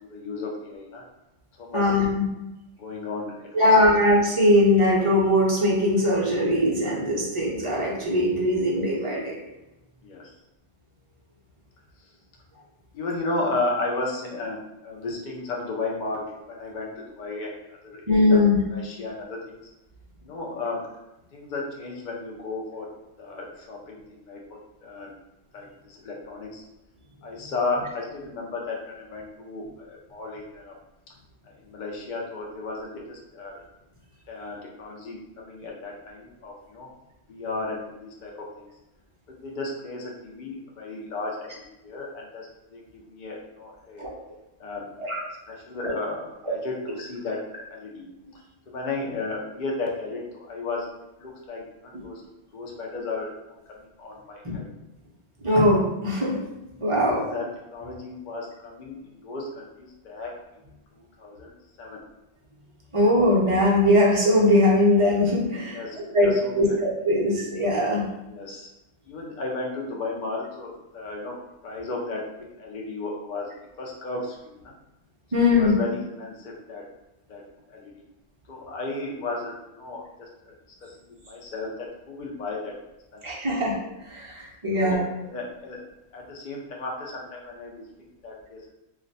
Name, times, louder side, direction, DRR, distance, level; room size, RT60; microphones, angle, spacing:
voice 1, 0.1-1.0 1.6-1.9 2.8-3.8 10.0-10.2 12.9-17.5 17.8-18.4 18.7-19.6 20.2-20.8 21.3-22.9 23.2-24.4 24.8-25.1 25.5-26.7 27.2-30.7 31.5-33.6 34.3-36.9 37.3-38.6 39.3-44.1 44.6-44.8 45.5-47.4 47.7-48.1 48.7-50.9 51.2-52.2 52.5-53.3 53.8-54.6 56.9-60.3 60.9-61.5 61.8-62.0 65.7-66.8 68.3-68.7 69.1-71.4 71.6-72.2 72.6-73.5 73.8-74.7 75.6-76.9 77.3-77.4 77.7-77.9 78.5-80.5 80.8-82.7 83.1-83.2 84.8-85.8 86.1-88.7, left 3 dB, 60° left, -2 dB, 0.5 m, -34 dB
voice 2, 1.7-2.2 3.5-9.4 18.1-18.6 44.0-44.1 45.0-45.2 45.8-45.9 51.9-52.0 54.4-54.5 55.4-56.4 56.8-57.2 62.9-65.8 66.1-68.0 75.3-75.8 83.2-83.7 84.1-85.0, left 1 dB, 40° right, -4 dB, 0.4 m, -21 dB
2.4 x 2.1 x 3.9 m, 0.94 s
omnidirectional pair, 1.3 m